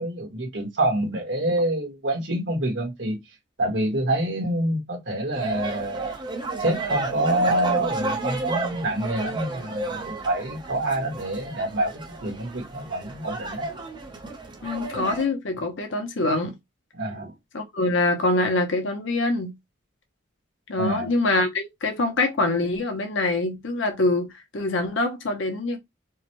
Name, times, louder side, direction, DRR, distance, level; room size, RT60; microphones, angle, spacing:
voice 1, 0.0-3.2 3.6-6.1 6.6-11.9 12.2-13.6 16.9-17.3 20.8-21.1, right 1 dB, 70° right, 1.7 m, -26 dB
sound 1, 5.3-15.2, right 3 dB, 25° right, 0.9 m, -32 dB
voice 2, 14.6-16.6 17.5-19.5 20.7-25.8, left 2 dB, 85° left, 0.9 m, -24 dB
4.6 x 2.3 x 3.0 m
head